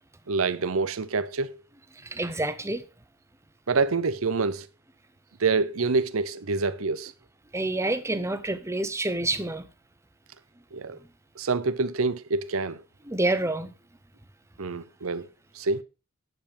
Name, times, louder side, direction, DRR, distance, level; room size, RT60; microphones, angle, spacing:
voice 1, 0.3-1.6 3.7-4.7 5.4-7.1 10.7-11.0 11.4-12.8 14.6-15.3 15.5-15.8, right 4 dB, 90° right, 0.8 m, -26 dB
voice 2, 2.0-2.8 7.5-9.6 13.1-13.7, right 2 dB, 15° right, 0.8 m, -28 dB
9.8 x 7.5 x 5.1 m
head